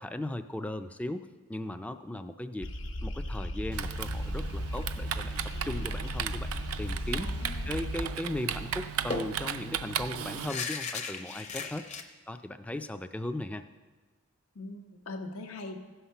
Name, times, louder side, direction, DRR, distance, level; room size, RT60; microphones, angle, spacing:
voice 1, 0.0-2.7 3.0-7.3 7.7-11.8 12.3-13.6, left 1 dB, 5° left, 9 dB, 0.3 m, -37 dB
sound 1, 2.6-8.1, left 1 dB, 60° left, 1.1 m, -36 dB
Typing, 3.7-10.6, right 9 dB, 90° right, 0.5 m, -36 dB
voice 2, 7.1-7.7 14.5-15.8, left 2 dB, 85° left, 3 dB, 1.0 m, -41 dB
sound 2, 8.0-8.2 8.5-8.6 9.1-12.0, left 4 dB, 30° left, 0.7 m, -37 dB
15.0 x 5.8 x 5.6 m, 1.4 s
head